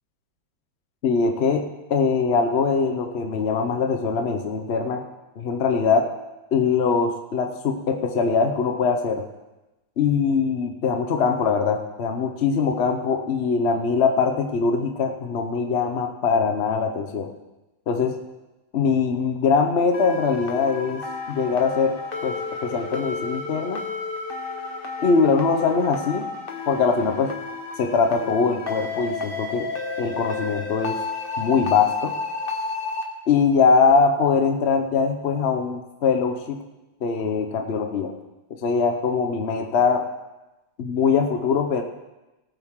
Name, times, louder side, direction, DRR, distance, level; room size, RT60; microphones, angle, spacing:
voice 1, 1.0-1.6 1.9-5.0 5.4-6.1 6.5-9.3 10.0-17.3 17.9-18.2 18.7-23.8 25.0-26.3 26.7-27.3 27.8-29.7 30.0-31.0 31.4-32.1 33.3-36.6 37.0-38.1 38.6-40.1 40.8-41.8, left 5 dB, 55° left, 5 dB, 0.7 m, -22 dB
sound 1, 19.9-33.0, left 4 dB, 30° left, 1.3 m, -32 dB
17.5 x 9.3 x 3.7 m, 1.0 s
omnidirectional pair, 2.2 m